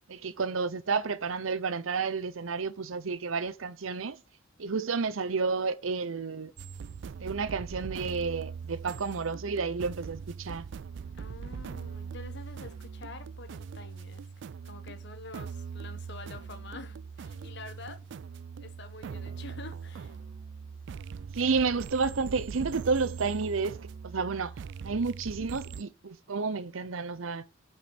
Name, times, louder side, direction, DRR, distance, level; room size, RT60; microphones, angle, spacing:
voice 1, 0.1-4.2 4.6-6.5 7.2-10.7 21.3-23.8 24.0-24.5 24.8-27.4, right 4 dB, 85° right, 0.8 m, -31 dB
sound 1, 6.6-25.8, right 6 dB, 60° right, 0.3 m, -41 dB
voice 2, 11.1-14.3 14.6-18.1 18.6-20.2, left 3 dB, 60° left, 1.3 m, -47 dB
6.3 x 4.6 x 6.2 m
head